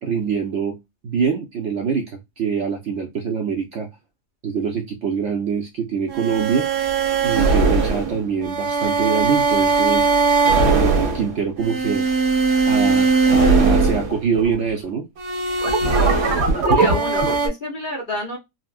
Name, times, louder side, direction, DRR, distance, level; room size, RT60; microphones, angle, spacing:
voice 1, 0.0-0.8 1.0-3.9 4.4-6.7 7.2-10.1 10.6-12.1 12.7-15.0, right 6 dB, 60° right, 0.8 m, -24 dB
sound 1, 6.1-14.6 15.2-17.5, right 4 dB, 85° right, 1.8 m, -19 dB
voice 2, 16.5-18.4, left 1 dB, 40° left, 0.8 m, -28 dB
4.0 x 2.1 x 2.3 m
omnidirectional pair, 1.7 m